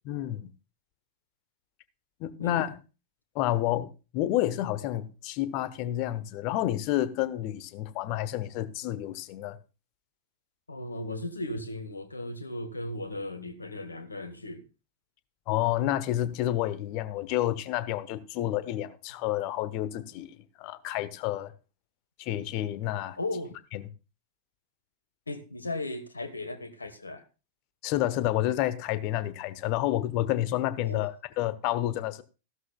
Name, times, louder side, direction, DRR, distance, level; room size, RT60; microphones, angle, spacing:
voice 1, 0.0-0.5 2.2-2.7 3.3-9.6 15.5-20.3 20.6-21.5 22.2-23.2 27.8-32.2, left 13 dB, 45° left, 1.1 m, -29 dB
voice 2, 2.4-2.7 10.7-14.6 23.2-23.5 25.3-27.2 30.8-31.0, left 2 dB, 80° left, 1.4 m, -36 dB
15.0 x 13.0 x 2.3 m
figure-of-eight pair, 90°, 0 cm